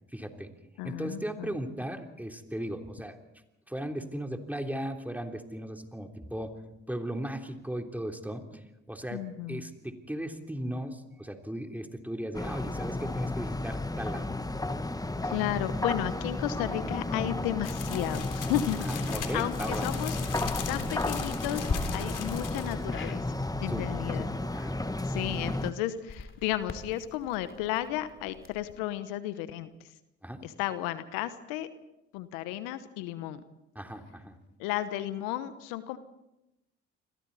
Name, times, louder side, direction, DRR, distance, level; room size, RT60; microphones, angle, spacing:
voice 1, 0.1-0.5 0.8-3.2 3.7-6.6 6.9-14.3 18.8-19.9 22.0-22.2 23.7-23.9 24.2-24.8 30.2-30.5 33.7-34.4, right 1 dB, 5° right, 3 dB, 3.4 m, -37 dB
voice 2, 0.8-1.5 9.1-9.6 15.2-18.8 19.3-20.2 20.7-23.2 23.6-24.3 25.1-29.7 30.4-31.7 32.1-33.4 34.6-36.0, left 13 dB, 80° left, 13 dB, 1.1 m, -33 dB
sound 1, 12.3-25.7, left 2 dB, 10° left, 1.3 m, -33 dB
sound 2, 17.6-22.8, left 6 dB, 65° left, 3.5 m, -39 dB
sound 3, 21.6-21.8 22.9-23.2 26.0-28.8, left 5 dB, 35° left, 2.8 m, -39 dB
28.5 x 22.5 x 4.2 m, 0.91 s
hypercardioid pair, 50°, 34 cm